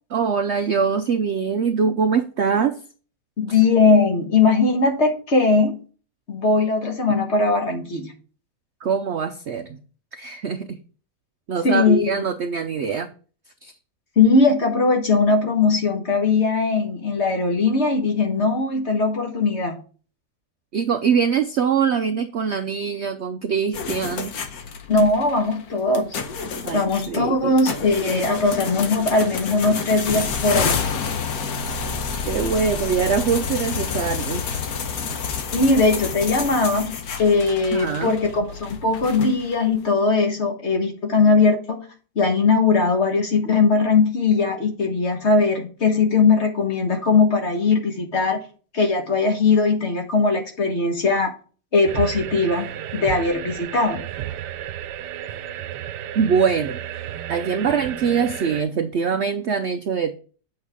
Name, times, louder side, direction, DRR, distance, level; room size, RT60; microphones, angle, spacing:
voice 1, 0.1-2.8 8.8-9.8 10.1-10.8 11.5-13.1 13.6-13.7 20.7-24.3 26.6-27.8 32.3-34.4 37.7-38.1 56.1-56.8 57.3-60.1, right 6 dB, 65° right, 8 dB, 0.7 m, -23 dB
voice 2, 3.4-5.8 6.3-8.1 11.6-12.1 14.2-19.8 24.9-26.1 26.7-30.9 35.5-36.9 37.2-41.8 42.1-48.4 48.7-51.3 51.7-52.6 52.9-54.0, left 4 dB, 45° left, 2 dB, 1.6 m, -19 dB
sound 1, 23.7-39.7, left 6 dB, 65° left, 1.4 m, -29 dB
sound 2, 51.9-58.6, right 11 dB, 85° right, 1.2 m, -32 dB
8.4 x 6.3 x 3.5 m, 0.39 s
omnidirectional pair, 1.8 m